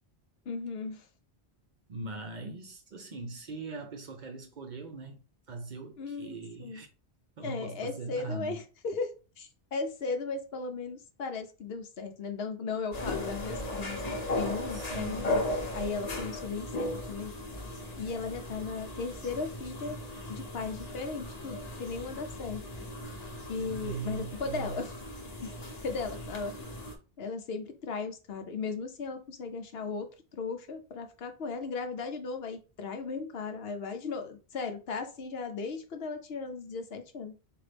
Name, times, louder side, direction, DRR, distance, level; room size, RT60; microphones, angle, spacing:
voice 1, 0.5-1.1 6.0-6.8 7.4-9.1 9.4-14.0 14.3-15.4 15.7-17.3 18.0-20.0 20.3-22.6 23.5-25.0 25.8-26.5 27.2-37.3, left 4 dB, 70° left, 0.9 m, -36 dB
voice 2, 1.9-5.2 5.5-6.9 7.4-8.6 14.7-15.4 23.6-24.8, right 3 dB, 55° right, 0.6 m, -40 dB
sound 1, 12.9-27.0, left 1 dB, 40° left, 0.9 m, -37 dB
3.9 x 2.5 x 3.3 m
omnidirectional pair, 1.1 m